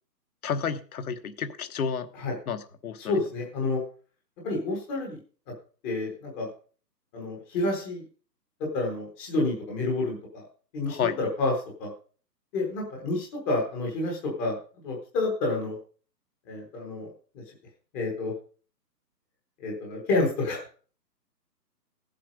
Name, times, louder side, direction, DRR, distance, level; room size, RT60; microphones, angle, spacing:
voice 1, 0.4-2.1 2.5-3.1 10.9-11.2, left 7 dB, 55° left, 9 dB, 1.3 m, -31 dB
voice 2, 3.0-3.8 4.4-5.2 5.8-6.5 7.1-8.0 8.7-10.4 10.7-11.5 11.8-11.9 12.5-14.5 14.8-15.8 16.5-17.1 17.9-18.3 19.6-20.6, left 2 dB, 5° left, -2 dB, 0.9 m, -29 dB
15.0 x 7.6 x 5.0 m, 0.40 s
hypercardioid pair, 160°, 50 cm